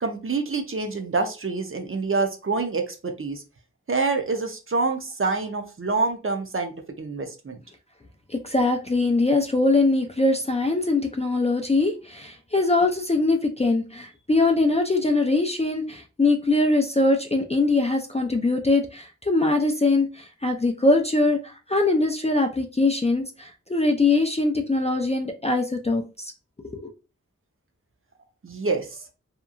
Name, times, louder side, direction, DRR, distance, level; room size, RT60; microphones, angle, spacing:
voice 1, 0.0-3.4 3.9-7.6 28.4-29.0, right 3 dB, 45° right, 0.5 m, -26 dB
voice 2, 8.4-20.1 20.4-26.3 26.7-26.8, left 2 dB, 20° left, 0.3 m, -22 dB
2.8 x 2.2 x 2.4 m
wide cardioid pair, 60°, 31 cm